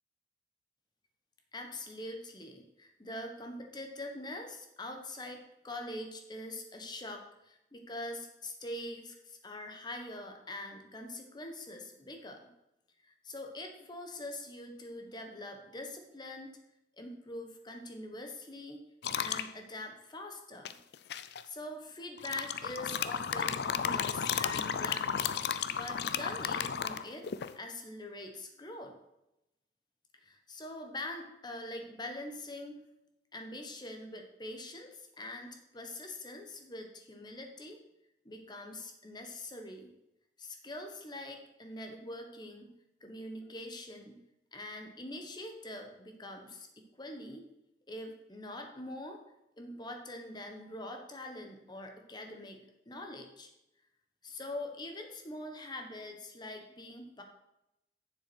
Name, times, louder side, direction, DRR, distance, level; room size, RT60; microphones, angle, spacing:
voice 1, 1.5-12.4 13.0-16.6 17.0-18.8 19.1-20.8 21.4-25.2 25.7-27.3 27.5-28.9 30.2-32.8 33.3-37.8 38.2-39.9 40.4-42.7 43.0-44.2 44.5-47.4 47.9-49.2 49.6-53.5 54.2-57.2, left 1 dB, 25° left, 4 dB, 1.3 m, -44 dB
sound 1, 19.0-19.5 20.6-21.4 22.2-27.5, left 7 dB, 65° left, 0.5 m, -33 dB
7.5 x 6.9 x 6.2 m, 0.88 s
head